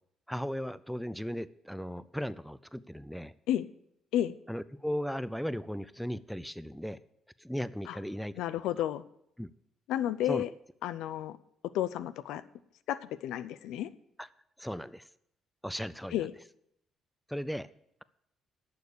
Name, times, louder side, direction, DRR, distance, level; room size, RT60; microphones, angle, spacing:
voice 1, 0.3-3.3 4.5-7.0 7.4-8.8 9.4-9.5 10.2-10.4 14.2-14.3 14.6-15.0 15.6-16.3 17.3-17.7, equal, ahead, 17 dB, 0.5 m, -37 dB
voice 2, 8.4-9.0 9.9-10.5 10.8-11.4 11.7-12.4 12.9-13.9 16.1-16.3, left 12 dB, 85° left, 15 dB, 0.6 m, -31 dB
11.5 x 6.9 x 8.3 m, 0.76 s
cardioid pair, 90°, 0 cm